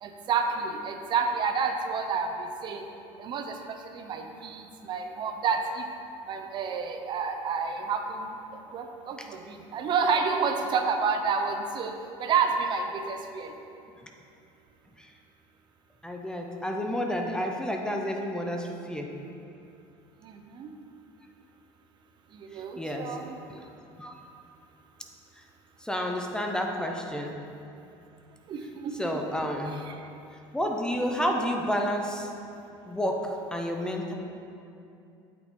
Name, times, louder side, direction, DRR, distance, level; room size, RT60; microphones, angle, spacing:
voice 1, 0.0-2.8 3.2-3.6 3.9-5.8 6.3-8.4 8.7-11.9 12.2-13.5 20.2-20.7 22.3-23.3 28.5-28.9 29.9-30.0, right 5 dB, 40° right, 5 dB, 0.6 m, -29 dB
voice 2, 16.0-19.1 22.5-23.2 23.5-23.7 24.0-24.2 25.8-27.4 29.0-29.8 30.5-32.3 32.9-34.1, equal, 5° left, 2 dB, 0.6 m, -30 dB
8.6 x 6.1 x 3.7 m, 2.7 s
cardioid pair, 130°, 12 cm